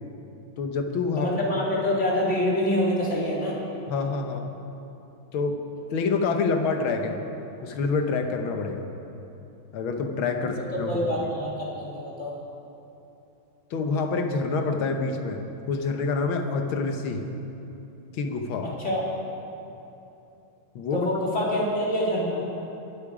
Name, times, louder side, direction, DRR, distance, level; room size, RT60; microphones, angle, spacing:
voice 1, 0.6-1.3 3.9-4.5 5.3-5.6 5.9-7.2 7.6-8.9 9.7-11.3 13.7-15.4 15.7-17.2 18.1-18.7 20.8-21.1, left 4 dB, 85° left, 5 dB, 1.9 m, -27 dB
voice 2, 1.1-3.6 10.9-12.3 18.6-19.1 20.9-22.5, left 1 dB, 35° left, -5 dB, 3.1 m, -26 dB
22.5 x 8.5 x 5.0 m, 2.9 s
omnidirectional pair, 2.2 m